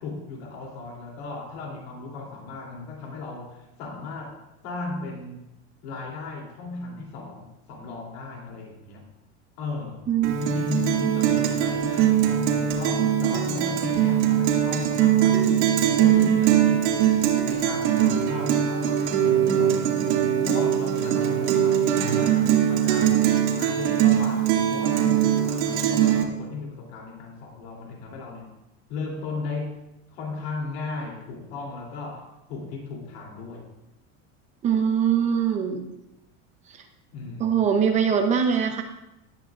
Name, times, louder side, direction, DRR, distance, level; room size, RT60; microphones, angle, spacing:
voice 1, 0.0-4.4 4.6-5.5 5.8-9.1 9.6-10.1 10.4-16.9 17.4-19.8 20.4-23.2 23.6-28.5 28.9-29.8 30.1-33.7 37.1-37.5, left 3 dB, 65° left, 0 dB, 3.1 m, -36 dB
voice 2, 10.1-10.4 34.6-35.9 37.4-38.8, right 7 dB, 20° right, 4 dB, 0.7 m, -22 dB
Guitar, 10.2-26.2, right 10 dB, 75° right, 2.3 m, -21 dB
18.0 x 11.0 x 2.5 m, 0.91 s
cardioid pair, 175°, 34 cm